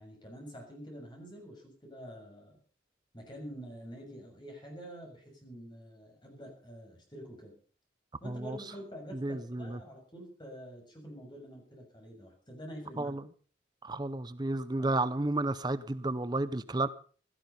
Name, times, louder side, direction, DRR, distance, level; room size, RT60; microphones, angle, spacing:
voice 1, 0.0-2.6 3.1-7.6 8.2-13.2 14.8-14.9, equal, 25° left, 6.7 m, -47 dB
voice 2, 8.2-8.6 9.1-9.8 13.0-13.2 13.8-16.9, right 2 dB, 20° right, 0.6 m, -32 dB
17.0 x 12.5 x 5.6 m
head